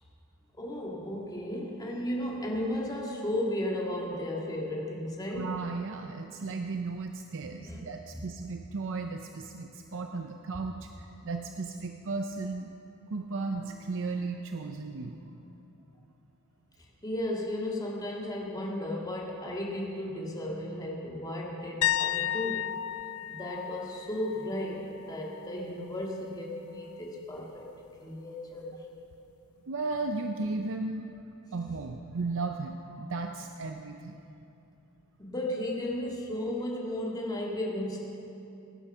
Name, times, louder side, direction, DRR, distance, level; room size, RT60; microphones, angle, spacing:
voice 1, 0.6-5.5 7.6-7.8 8.1-8.2 17.0-22.7 23.3-27.7 28.0-28.7 35.2-38.1, left 1 dB, 20° left, -2 dB, 1.9 m, -34 dB
voice 2, 5.3-12.7 13.1-15.2 29.7-31.1 31.5-34.2, right 3 dB, 60° right, 5 dB, 0.6 m, -35 dB
sound 1, 21.8-25.6 25.9-26.2 29.1-29.2, left 12 dB, 70° left, 0.3 m, -33 dB
18.0 x 9.9 x 5.6 m, 2.7 s
head